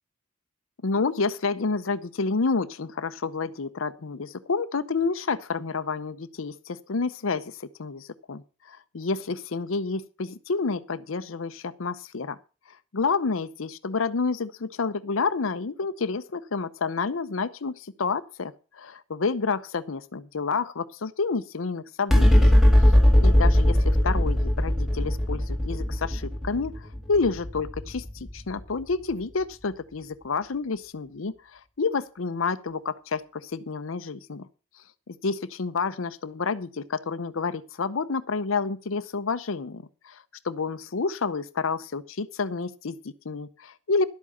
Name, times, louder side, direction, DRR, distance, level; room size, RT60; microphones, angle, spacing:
voice 1, 0.8-12.4 12.9-22.5 23.2-26.7 27.1-34.5 35.1-44.0, left 4 dB, 80° left, 0.7 m, -29 dB
sound 1, 22.1-28.8, left 1 dB, ahead, 1.7 m, -20 dB
11.5 x 8.5 x 6.4 m
head